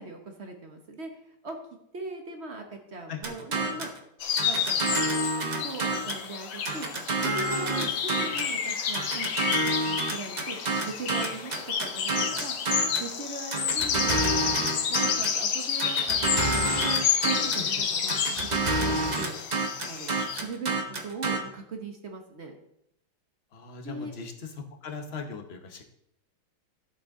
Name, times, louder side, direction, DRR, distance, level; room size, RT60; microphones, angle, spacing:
voice 1, 0.0-1.6 1.9-3.9 4.4-5.2 5.6-6.9 7.2-14.5 14.9-16.7 17.2-19.4 19.9-20.7 21.0-22.6 23.8-24.1, right 3 dB, 45° right, 4 dB, 0.9 m, -40 dB
sound 1, 3.2-4.0 4.4-6.3 6.6-8.5 8.9-13.1 13.5-15.4 15.8-17.7 18.1-21.4, right 2 dB, 75° right, 0.4 m, -29 dB
sound 2, 4.2-20.4, left 7 dB, 65° left, 1.6 m, -30 dB
voice 2, 23.5-24.3 24.8-25.8, left 5 dB, 40° left, 3 dB, 0.9 m, -39 dB
11.5 x 8.0 x 3.7 m, 0.77 s
omnidirectional pair, 2.4 m